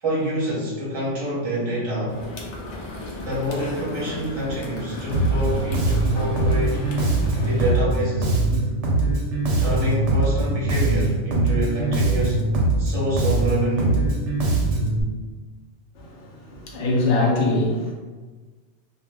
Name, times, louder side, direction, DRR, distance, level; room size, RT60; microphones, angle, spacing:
voice 1, 0.0-2.2 3.2-6.9 7.4-8.4 9.6-12.4 12.8-14.0, equal, 25° right, -7 dB, 0.8 m, -26 dB
sound 1, 2.1-7.7, left 2 dB, 60° left, 0.4 m, -34 dB
Bass guitar, 5.1-15.0, right 2 dB, 85° right, 1.0 m, -22 dB
voice 2, 16.5-17.9, left 2 dB, 80° left, -2 dB, 1.0 m, -22 dB
2.3 x 2.1 x 3.4 m, 1.3 s
omnidirectional pair, 1.2 m